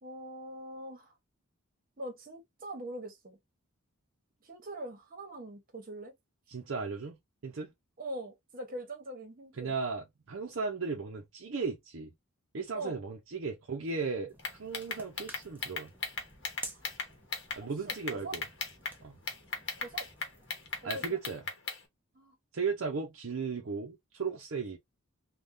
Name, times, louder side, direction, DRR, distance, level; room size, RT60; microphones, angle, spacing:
voice 1, 0.0-1.1 2.0-3.4 4.4-6.1 8.0-9.8 12.7-13.0 16.7-16.8 17.6-18.4 19.8-20.1 20.8-21.2 22.1-22.3, right 1 dB, 40° right, 1.1 m, -43 dB
voice 2, 6.5-7.1 7.4-7.7 9.6-12.1 12.5-14.3 14.6-15.9 17.6-18.4 19.0-19.2 20.8-21.4 22.5-24.8, right 4 dB, 60° right, 0.6 m, -36 dB
sound 1, 14.3-20.9, right 2 dB, 10° right, 0.6 m, -51 dB
sound 2, 14.4-17.6 17.9-19.0 19.3-21.8, left 4 dB, 55° left, 0.9 m, -37 dB
3.4 x 2.3 x 2.6 m
head